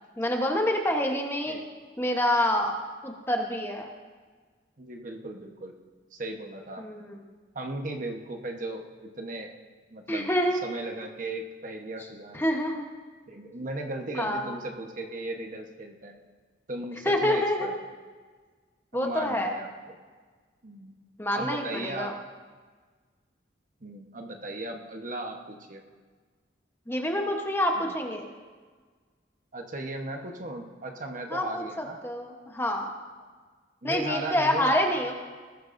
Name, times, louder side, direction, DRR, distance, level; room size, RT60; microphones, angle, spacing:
voice 1, 0.2-1.6 2.0-2.8 3.0-3.9 6.8-7.2 10.1-10.7 12.3-12.9 14.1-14.5 17.0-17.8 18.9-19.5 21.2-22.1 26.9-28.3 31.3-32.9 33.8-35.1, left 1 dB, 15° left, 2 dB, 1.1 m, -27 dB
voice 2, 4.8-5.7 6.1-6.8 7.5-9.6 9.9-10.3 10.6-12.6 13.3-16.1 16.7-17.7 18.9-19.7 20.6-21.0 21.3-22.2 23.8-25.8 27.8-27.9 29.5-32.0 33.8-34.8, right 2 dB, 45° right, 3 dB, 1.1 m, -37 dB
19.5 x 13.5 x 2.7 m, 1.5 s
head